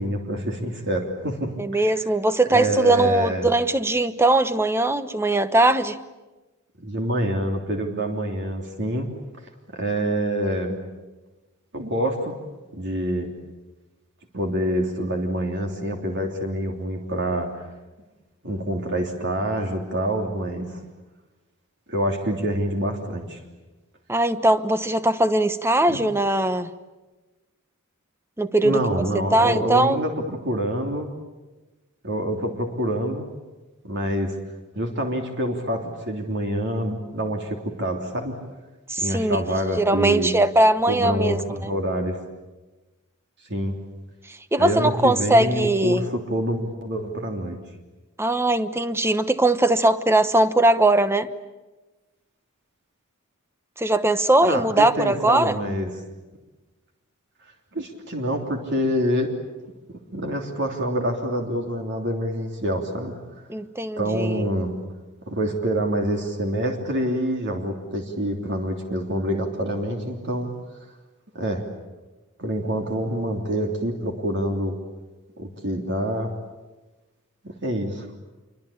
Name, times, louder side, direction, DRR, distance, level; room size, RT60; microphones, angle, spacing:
voice 1, 0.0-1.5 2.5-3.5 6.8-9.1 9.7-10.8 11.7-12.4 12.7-13.3 14.3-17.6 18.4-20.8 21.9-23.4 25.9-26.1 28.6-31.1 32.0-33.3 33.8-34.3 34.7-38.3 39.0-40.3 40.9-42.2 43.4-43.8 44.6-47.6 54.4-55.9 57.7-59.3 59.9-63.2 64.0-64.7 65.3-70.5 71.3-71.6 72.4-74.8 75.4-76.3 77.4-78.1, equal, 55° right, 3 dB, 3.2 m, -26 dB
voice 2, 1.6-6.0 24.1-26.7 28.4-30.0 38.9-41.4 44.3-46.1 48.2-51.3 53.8-55.6 63.5-64.5, right 2 dB, 10° right, 12 dB, 1.0 m, -20 dB
27.5 x 24.5 x 8.6 m, 1.2 s
head